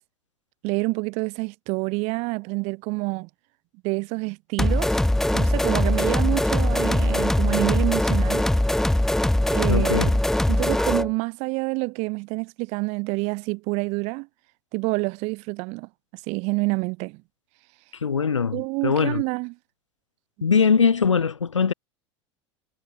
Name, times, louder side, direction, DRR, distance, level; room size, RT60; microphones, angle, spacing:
voice 1, 0.6-3.3 3.8-5.0 5.3-8.4 9.5-10.1 10.5-14.3 14.7-15.9 16.3-17.2 18.5-19.5, right 28 dB, 50° right, 0.5 m, -27 dB
sound 1, 4.6-11.1, left 1 dB, 5° left, 0.4 m, -21 dB
voice 2, 9.7-10.1 18.0-19.2 20.4-21.7, left 6 dB, 85° left, 0.9 m, -21 dB
figure-of-eight pair, 80°, 15 cm